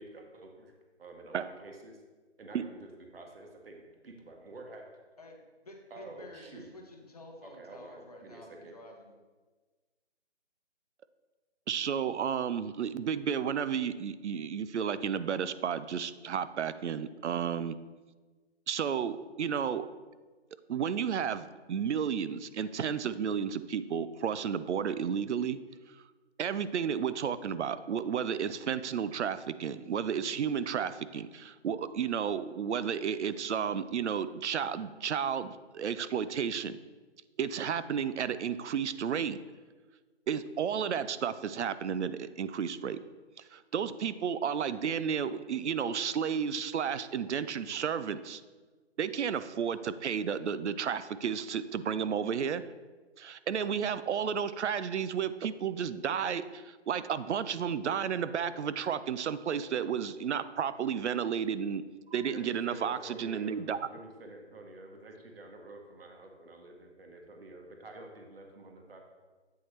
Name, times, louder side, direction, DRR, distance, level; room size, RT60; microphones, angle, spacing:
voice 1, 0.0-0.7 1.0-2.0 2.4-4.8 5.9-6.7 7.4-8.7 62.1-69.0, right 2 dB, 55° right, 2 dB, 1.1 m, -49 dB
voice 2, 5.6-9.2, left 1 dB, 35° left, 1 dB, 0.8 m, -50 dB
voice 3, 11.7-17.8 18.7-19.9 20.7-25.6 26.4-36.8 37.4-39.4 40.3-43.0 43.5-48.4 49.0-52.6 53.2-61.8 62.1-63.9, right 7 dB, 80° right, 14 dB, 0.5 m, -32 dB
8.3 x 4.5 x 3.1 m, 1.3 s
hypercardioid pair, 175°, 34 cm